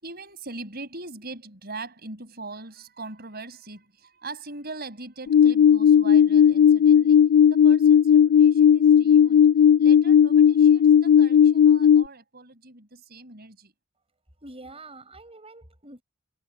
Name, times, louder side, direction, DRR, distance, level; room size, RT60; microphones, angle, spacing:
voice 1, 0.0-9.5 9.8-13.7, right 3 dB, 50° right, 5.9 m, -41 dB
sound 1, 5.3-12.0, left 8 dB, 60° left, 0.3 m, -16 dB
voice 2, 14.4-16.0, right 2 dB, 30° right, 6.8 m, -45 dB
head